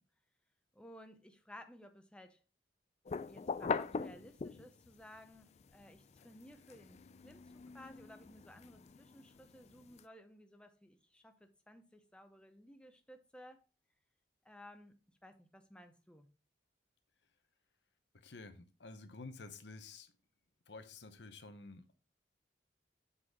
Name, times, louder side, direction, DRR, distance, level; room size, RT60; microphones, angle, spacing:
voice 1, 0.7-2.4 3.3-13.6 14.4-15.0 15.2-16.3, left 1 dB, 5° left, 0.7 m, -57 dB
sound 1, 3.1-4.9 5.4-10.0, left 5 dB, 40° left, 0.4 m, -42 dB
voice 2, 18.1-20.1 20.7-21.9, left 3 dB, 75° left, 0.9 m, -51 dB
7.6 x 4.1 x 4.8 m
head